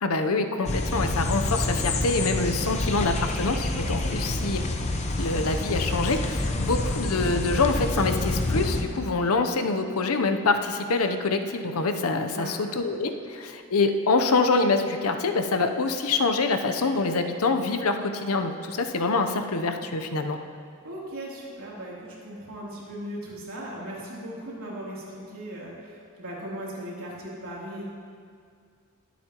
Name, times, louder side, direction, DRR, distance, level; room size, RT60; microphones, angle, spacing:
voice 1, 0.0-4.6 5.2-20.4, left 3 dB, 80° left, 6 dB, 0.8 m, -25 dB
sound 1, 0.6-8.8, left 2 dB, 30° left, 0.8 m, -27 dB
voice 2, 4.0-4.5 12.3-12.6 20.8-27.8, right 1 dB, 70° right, -6 dB, 3.1 m, -38 dB
22.0 x 8.4 x 3.0 m, 2.2 s
head